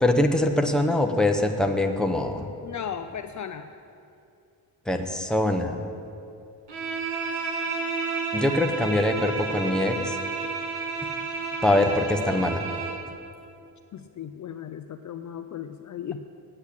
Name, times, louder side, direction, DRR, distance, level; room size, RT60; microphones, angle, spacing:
voice 1, 0.0-2.5 4.9-5.8 8.3-10.2 11.6-12.6, left 1 dB, ahead, 4 dB, 0.9 m, -23 dB
voice 2, 2.6-3.7 13.9-16.3, left 8 dB, 45° left, 8 dB, 0.5 m, -36 dB
Bowed string instrument, 6.7-13.1, right 4 dB, 80° right, 1.9 m, -31 dB
8.6 x 8.2 x 8.3 m, 2.6 s
cardioid pair, 95°, 42 cm